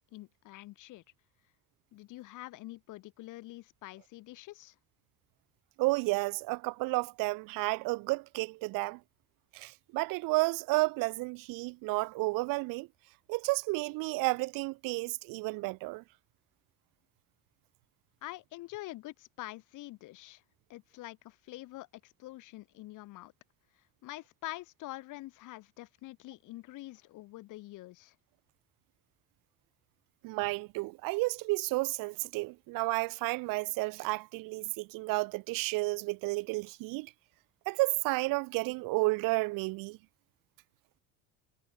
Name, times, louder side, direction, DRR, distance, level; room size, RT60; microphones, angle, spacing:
voice 1, 0.1-1.0 1.9-4.8 18.2-20.4 20.7-23.3 24.0-28.1, left 18 dB, 65° left, 2.7 m, -46 dB
voice 2, 5.8-9.0 9.5-12.9 13.3-16.0 30.2-37.1 37.7-40.0, right 24 dB, 75° right, 0.7 m, -32 dB
cardioid pair, 175°, 34 cm